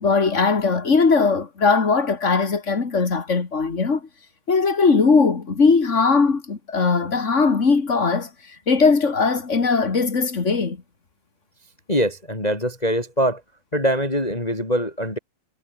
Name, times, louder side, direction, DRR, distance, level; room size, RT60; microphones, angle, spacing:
voice 1, 0.0-4.0 4.5-8.3 8.7-10.8, left 4 dB, 25° left, 1.8 m, -19 dB
voice 2, 11.9-13.4 13.7-15.2, equal, 10° left, 4.3 m, -23 dB
omnidirectional pair, 3.9 m